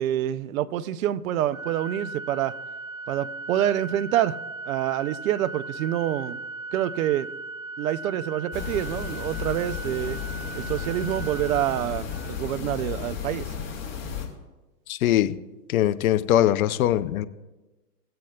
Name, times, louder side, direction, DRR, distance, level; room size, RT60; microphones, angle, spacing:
voice 1, 0.0-2.6 3.1-4.4 4.7-6.4 6.7-7.3 7.8-10.2 10.5-13.5, right 12 dB, 60° right, 0.6 m, -27 dB
Organ, 1.5-12.6, right 3 dB, 10° right, 0.4 m, -38 dB
sound 1, 8.5-14.3, left 7 dB, 30° left, 2.1 m, -34 dB
voice 2, 14.9-15.3 15.7-17.3, left 12 dB, 60° left, 0.6 m, -21 dB
18.0 x 7.7 x 2.3 m
hypercardioid pair, 110°, 48 cm